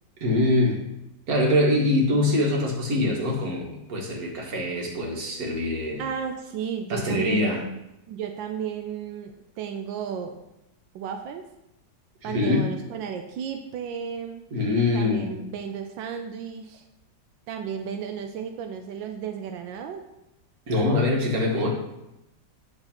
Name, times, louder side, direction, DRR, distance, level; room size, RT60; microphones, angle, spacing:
voice 1, 0.2-0.8 1.3-6.0 6.9-7.6 12.2-12.7 14.5-15.4 20.7-21.7, left 1 dB, 50° right, 0 dB, 2.0 m, -24 dB
voice 2, 6.0-7.5 8.1-10.4 10.9-11.5 12.2-14.5 14.9-16.8 17.5-20.0, right 7 dB, 90° right, 5 dB, 1.4 m, -33 dB
8.9 x 4.1 x 6.0 m, 0.89 s
omnidirectional pair, 2.0 m